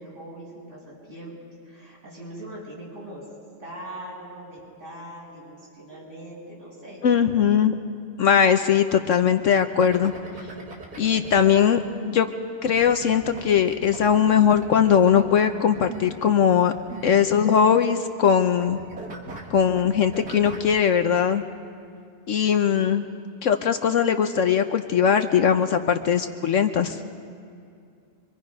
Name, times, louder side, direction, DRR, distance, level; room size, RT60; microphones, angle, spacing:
voice 1, 0.0-1.3 1.6-3.2 3.6-7.5 22.5-23.0, right 1 dB, 55° right, -6 dB, 7.8 m, -41 dB
voice 2, 7.0-7.8 8.2-10.1 11.0-12.3 12.6-16.7 17.0-18.8 19.5-21.4 22.3-23.0 23.4-27.0, left 8 dB, 65° left, 8 dB, 1.0 m, -20 dB
sound 1, 9.8-11.4 12.6-18.3 18.6-20.7, right 3 dB, 85° right, 2.6 m, -41 dB
24.5 x 24.5 x 5.4 m, 2.4 s
omnidirectional pair, 1.6 m